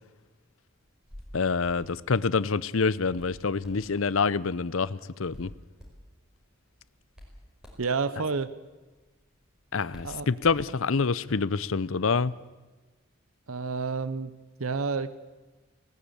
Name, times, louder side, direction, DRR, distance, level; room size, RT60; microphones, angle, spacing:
Hands, 0.8-11.1, equal, 5° right, 5.2 m, -52 dB
voice 1, 1.3-5.5 9.7-12.3, left 4 dB, 75° left, 18 dB, 0.7 m, -26 dB
voice 2, 7.8-8.5 10.0-10.3 13.5-14.3 14.6-15.1, right 4 dB, 90° right, 15 dB, 0.9 m, -29 dB
20.0 x 18.0 x 8.3 m, 1.2 s
head